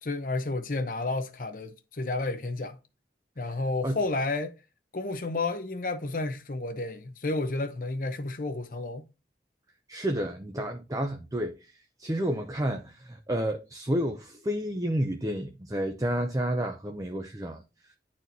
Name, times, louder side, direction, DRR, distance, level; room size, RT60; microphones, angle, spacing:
voice 1, 0.0-2.8 3.4-4.5 4.9-9.0, left 2 dB, 50° left, 0.7 m, -31 dB
voice 2, 9.9-17.9, equal, 20° right, 0.5 m, -31 dB
10.5 x 4.3 x 2.7 m
head